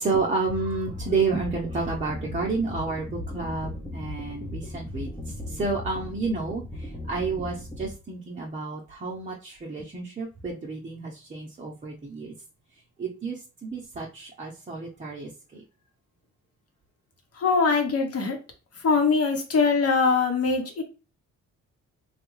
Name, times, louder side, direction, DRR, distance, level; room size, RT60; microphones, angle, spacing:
voice 1, 0.0-12.3 13.0-15.6, right 4 dB, 25° right, -2 dB, 0.7 m, -30 dB
sound 1, 0.9-7.9, left 1 dB, 10° left, 0.7 m, -37 dB
voice 2, 17.4-18.4 18.8-20.8, left 4 dB, 55° left, 4 dB, 1.1 m, -22 dB
3.3 x 2.3 x 3.1 m, 0.33 s
cardioid pair, 90°, 30 cm